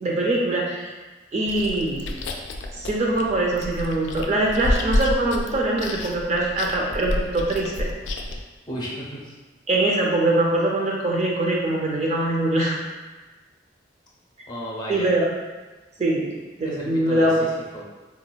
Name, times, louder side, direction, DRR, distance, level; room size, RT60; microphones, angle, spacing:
voice 1, 0.0-0.9 1.3-2.1 2.8-7.9 9.7-12.8 14.9-15.3 16.0-16.3 16.6-17.5, right 1 dB, 40° right, -2 dB, 0.4 m, -23 dB
Chewing mastication, 1.5-8.4, left 1 dB, 75° left, 0.3 m, -29 dB
voice 2, 8.7-9.4 14.5-15.1 16.6-17.9, equal, 25° left, -4 dB, 0.6 m, -34 dB
4.0 x 2.2 x 2.2 m, 1.2 s
head